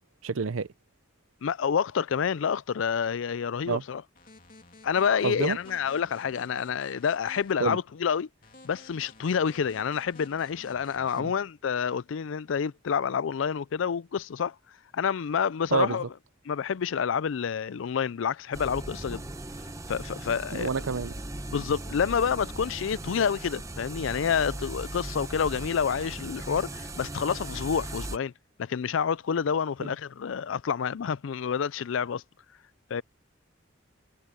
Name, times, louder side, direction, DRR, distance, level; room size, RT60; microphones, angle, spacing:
voice 1, 0.2-0.7 3.7-3.8 5.2-5.6 7.6-7.8 11.2-11.3 15.7-16.1 20.5-21.1 29.8-29.9, right 5 dB, 90° right, 0.7 m, -28 dB
voice 2, 1.4-4.0 4.8-8.3 8.6-14.5 14.9-16.0 16.5-19.2 19.9-20.7 21.5-28.3 28.6-32.2 32.9-33.0, left 7 dB, 75° left, 0.4 m, -28 dB
sound 1, 4.1-7.5 8.4-11.2, left 3 dB, 45° left, 2.8 m, -52 dB
sound 2, 18.5-28.2, right 2 dB, 15° right, 0.9 m, -38 dB
head